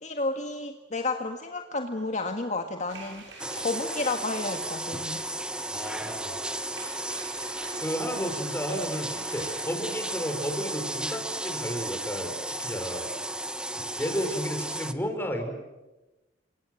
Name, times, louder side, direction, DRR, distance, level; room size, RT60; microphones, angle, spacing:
voice 1, 0.0-5.2, left 3 dB, 40° left, 5 dB, 1.7 m, -31 dB
sound 1, 2.9-9.6, right 3 dB, 85° right, 6.8 m, -47 dB
sound 2, 3.4-14.9, right 1 dB, 5° right, 1.1 m, -34 dB
voice 2, 5.7-6.3 7.8-12.3 12.6-13.1 14.0-15.5, equal, 10° left, 4 dB, 5.1 m, -32 dB
30.0 x 25.0 x 7.8 m, 1.1 s
head